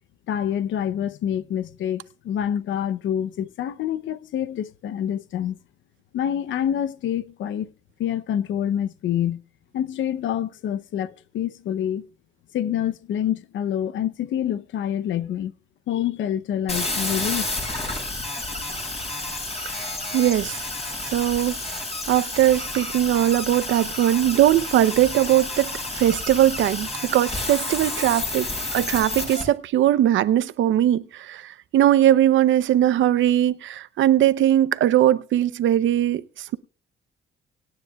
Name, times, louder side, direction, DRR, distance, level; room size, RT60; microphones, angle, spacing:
voice 1, 0.3-5.6 6.1-7.7 8.0-9.4 9.7-12.1 12.5-15.5 15.9-17.5, left 10 dB, 75° left, 0.7 m, -27 dB
sound 1, 16.7-29.4, left 2 dB, 30° left, 7.0 m, -30 dB
voice 2, 19.6-20.6 21.0-21.6 22.1-28.5 28.7-36.6, right 12 dB, 75° right, 0.7 m, -20 dB
24.5 x 9.7 x 2.3 m
cardioid pair, 90°, 20 cm